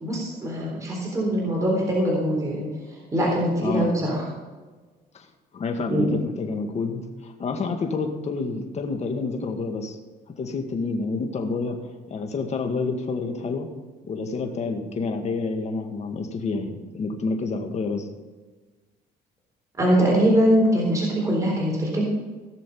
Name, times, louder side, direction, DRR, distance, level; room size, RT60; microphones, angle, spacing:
voice 1, 0.0-4.3 5.9-6.1 19.8-22.0, equal, 20° right, -3 dB, 3.8 m, -22 dB
voice 2, 3.6-3.9 5.1-5.3 5.5-10.0 10.4-11.8 12.1-13.7 14.0-18.1, left 4 dB, 40° left, 4 dB, 1.9 m, -28 dB
17.5 x 6.8 x 5.5 m, 1.3 s
cardioid pair, 110°, 17 cm